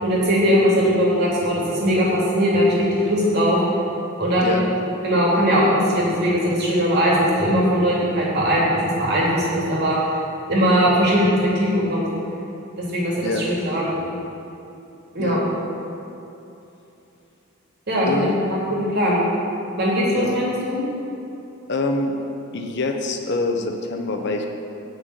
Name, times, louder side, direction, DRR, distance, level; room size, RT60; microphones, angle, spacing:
voice 1, 0.0-3.6 4.2-4.8 5.0-10.0 10.5-12.1 12.8-14.0 15.1-15.4 17.9-19.2 19.8-20.8, equal, 50° right, -5 dB, 2.9 m, -20 dB
voice 2, 18.0-18.4 20.1-20.4 21.7-22.1 22.5-24.5, left 2 dB, 55° left, 4 dB, 0.9 m, -25 dB
8.8 x 6.3 x 8.1 m, 2.8 s
head